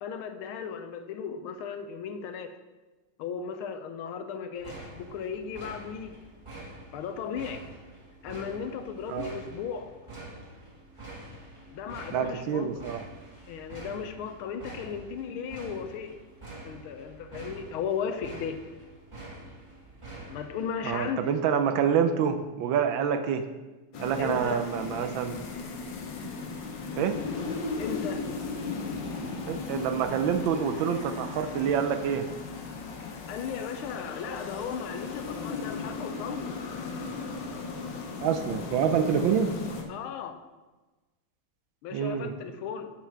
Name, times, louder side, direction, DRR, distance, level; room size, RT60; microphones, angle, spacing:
voice 1, 0.0-2.5 3.2-6.2 6.9-7.6 8.2-9.9 11.7-12.7 13.5-16.1 16.6-18.6 20.3-21.4 24.2-24.6 27.8-28.2 33.0-36.6 39.9-40.4 41.8-42.9, left 7 dB, 80° left, 8 dB, 1.5 m, -36 dB
sound 1, 4.6-21.0, right 2 dB, 15° right, 1.2 m, -46 dB
voice 2, 12.1-13.0 20.8-23.5 24.0-25.4 27.0-27.2 29.5-32.3 38.2-39.5 41.9-42.3, right 7 dB, 75° right, 8 dB, 1.2 m, -27 dB
sound 2, 23.9-39.8, left 4 dB, 60° left, 1.5 m, -36 dB
7.2 x 6.9 x 4.6 m, 1.2 s
omnidirectional pair, 2.4 m